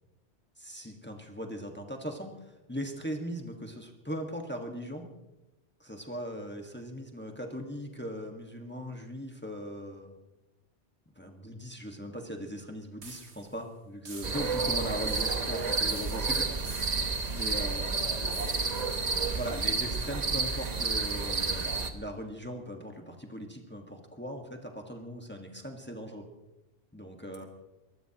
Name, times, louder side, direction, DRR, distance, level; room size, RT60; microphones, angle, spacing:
voice 1, 0.6-5.1 5.8-10.1 11.1-17.9 19.3-26.2 26.9-27.4, equal, 10° left, 2 dB, 1.5 m, -39 dB
sound 1, 13.0-13.6 14.0-14.7 15.1-15.7 16.0-17.3 18.4-18.9, right 4 dB, 75° right, 1.7 m, -49 dB
sound 2, 14.2-21.9, right 4 dB, 40° right, 1.1 m, -30 dB
voice 2, 15.4-16.6 17.5-18.8 19.1-19.4 27.4-27.5, left 3 dB, 75° left, 0 dB, 2.9 m, -46 dB
24.0 x 19.5 x 3.0 m, 1.0 s
omnidirectional pair, 1.2 m